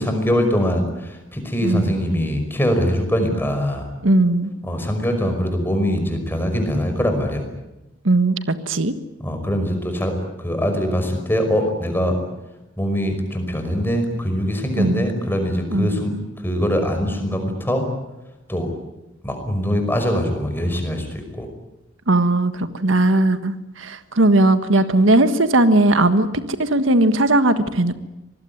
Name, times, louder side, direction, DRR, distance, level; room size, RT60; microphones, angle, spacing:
voice 1, 0.0-3.9 4.6-7.4 9.2-12.2 12.8-16.1 16.4-17.9 18.5-18.7 19.2-21.5, equal, 10° left, 5 dB, 5.4 m, -22 dB
voice 2, 1.6-2.0 4.0-4.5 8.0-8.3 8.7-8.9 14.8-15.0 15.7-16.0 22.1-26.3 26.6-27.9, right 2 dB, 85° right, 10 dB, 1.6 m, -18 dB
25.5 x 20.0 x 9.6 m, 0.95 s
head